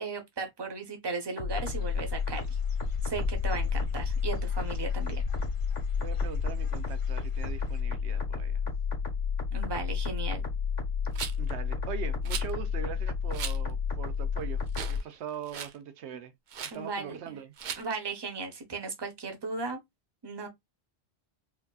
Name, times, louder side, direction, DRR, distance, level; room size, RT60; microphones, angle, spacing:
voice 1, 0.0-2.5 3.0-5.2 9.5-10.5 16.7-17.3 17.8-19.8 20.2-20.5, right 4 dB, 25° right, 0.8 m, -36 dB
sound 1, 1.4-15.0, left 6 dB, 70° left, 1.5 m, -31 dB
Dog / Bird, 1.5-7.8, left 2 dB, 30° left, 0.9 m, -38 dB
voice 2, 6.0-8.6 11.4-16.3 16.7-17.5, right 8 dB, 85° right, 0.9 m, -41 dB
Rattle, 11.2-11.5 12.3-12.5 13.3-13.6 14.1-14.2 14.7-15.0 15.3-15.8 16.5-16.8 17.6-17.8, right 7 dB, 55° right, 0.6 m, -37 dB
4.4 x 2.7 x 2.3 m
omnidirectional pair, 1.1 m